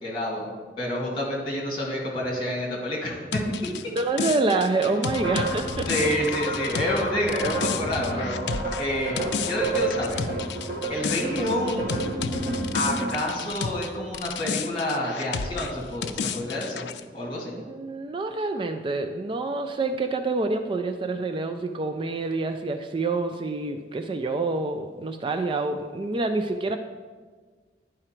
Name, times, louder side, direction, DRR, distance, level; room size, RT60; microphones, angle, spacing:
voice 1, 0.0-0.5 0.8-3.4 5.9-8.4 8.8-10.2 10.9-11.9 12.7-16.8 17.1-17.5, left 1 dB, 30° left, -2 dB, 2.1 m, -28 dB
sound 1, 3.3-13.9 14.1-17.0, left 6 dB, 70° left, 0.4 m, -32 dB
voice 2, 4.0-5.9 17.5-26.8, right 3 dB, 30° right, 7 dB, 0.3 m, -27 dB
sound 2, 5.1-13.1, right 2 dB, 55° right, 2.4 m, -30 dB
11.0 x 4.9 x 4.4 m, 1.5 s
head